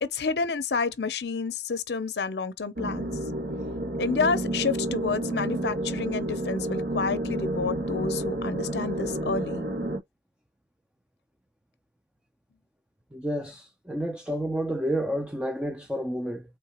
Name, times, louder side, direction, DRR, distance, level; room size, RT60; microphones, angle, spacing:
voice 1, 0.0-3.1 4.0-9.6, left 4 dB, 70° left, 0.6 m, -29 dB
sound 1, 2.8-10.0, right 1 dB, 60° right, 1.3 m, -30 dB
voice 2, 13.1-16.4, equal, 5° right, 0.4 m, -30 dB
4.4 x 3.8 x 2.9 m
head